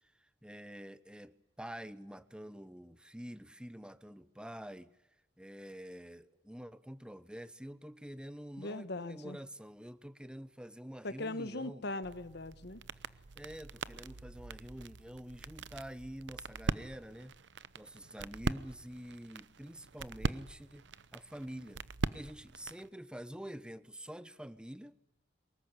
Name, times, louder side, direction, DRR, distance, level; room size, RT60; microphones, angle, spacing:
voice 1, 0.0-4.9 5.4-11.9 13.3-17.4 17.8-20.9 21.1-21.8 22.1-24.9, equal, 5° right, 1.0 m, -47 dB
voice 2, 8.6-9.4 11.0-12.8, left 2 dB, 60° left, 1.4 m, -40 dB
sound 1, 12.0-22.9, right 3 dB, 70° right, 0.9 m, -41 dB
24.0 x 20.5 x 9.9 m
head